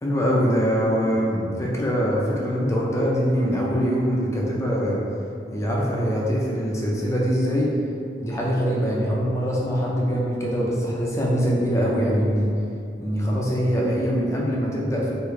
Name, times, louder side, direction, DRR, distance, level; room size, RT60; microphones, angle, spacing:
voice 1, 0.0-5.0 5.5-7.7 8.2-12.5 13.0-15.1, equal, 15° left, -4 dB, 0.5 m, -23 dB
3.1 x 2.5 x 3.6 m, 2.5 s
head